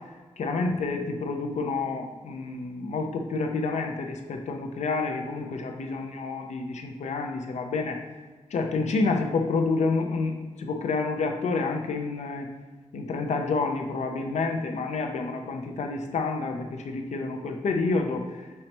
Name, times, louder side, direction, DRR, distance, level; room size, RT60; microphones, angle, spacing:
voice 1, 0.4-8.0 8.5-12.5 12.9-18.2, left 3 dB, 75° left, 3 dB, 0.6 m, -29 dB
5.5 x 3.2 x 2.9 m, 1.3 s
cardioid pair, 70°, 12 cm